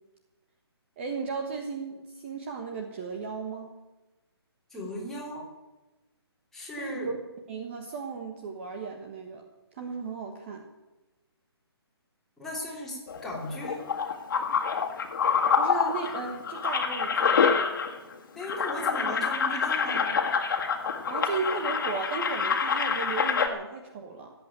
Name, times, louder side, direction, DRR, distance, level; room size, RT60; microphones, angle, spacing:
voice 1, 1.0-3.7 6.8-7.2 7.5-9.4 9.7-10.6 15.6-17.5 21.1-24.3, right 5 dB, 30° right, 3 dB, 1.3 m, -35 dB
voice 2, 4.7-5.5 6.5-7.1 12.4-13.8 18.3-20.1, equal, 5° left, -5 dB, 3.1 m, -37 dB
sound 1, 13.1-18.1 18.4-23.5, left 6 dB, 50° left, 2.0 m, -27 dB
18.5 x 8.2 x 9.1 m, 1.1 s
hypercardioid pair, 165°, 14 cm